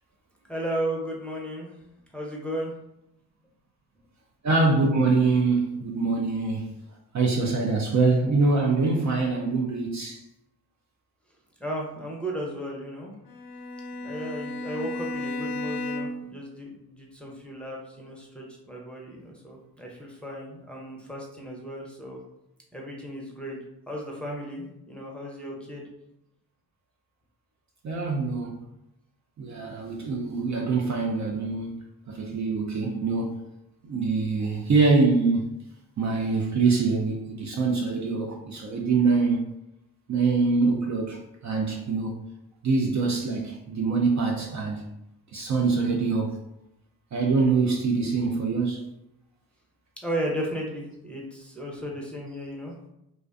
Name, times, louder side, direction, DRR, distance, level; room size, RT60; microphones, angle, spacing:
voice 1, 0.5-1.8 2.1-2.7 11.6-13.1 14.0-22.2 22.7-23.6 23.9-25.9 44.3-44.4 50.0-52.8, right 1 dB, 5° left, -3 dB, 0.7 m, -35 dB
voice 2, 4.4-6.7 7.1-10.2 27.8-28.6 29.4-31.8 32.1-33.4 33.8-35.4 36.0-39.4 40.1-41.2 41.4-42.1 42.6-44.8 45.3-46.3 47.1-48.9, right 4 dB, 40° right, 0 dB, 0.5 m, -24 dB
Bowed string instrument, 13.3-16.4, left 2 dB, 65° left, 0.5 m, -33 dB
2.5 x 2.1 x 2.4 m, 0.83 s
supercardioid pair, 55°, 44 cm